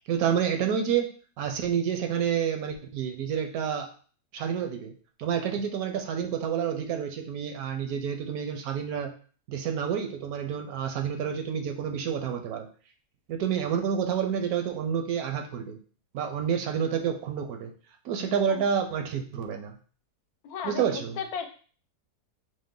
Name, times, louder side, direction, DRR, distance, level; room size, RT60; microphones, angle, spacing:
voice 1, 0.1-1.1 1.4-3.9 4.3-4.9 5.2-9.1 9.5-12.7 13.3-15.8 16.1-17.7 18.0-19.8 20.6-21.2, right 8 dB, 75° right, 5 dB, 1.0 m, -29 dB
voice 2, 20.4-21.5, left 7 dB, 75° left, 6 dB, 1.1 m, -35 dB
5.2 x 2.1 x 3.7 m, 0.42 s
omnidirectional pair, 1.7 m